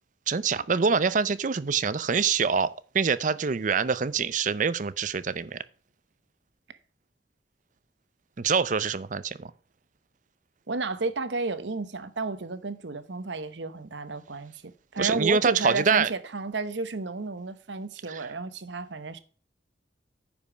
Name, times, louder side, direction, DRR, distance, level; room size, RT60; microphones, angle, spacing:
voice 1, 0.3-5.6 8.4-9.5 15.0-16.1 18.1-18.3, right 5 dB, 45° right, 0.5 m, -25 dB
voice 2, 10.7-19.2, right 3 dB, 85° right, 1.0 m, -32 dB
9.7 x 5.3 x 4.9 m
head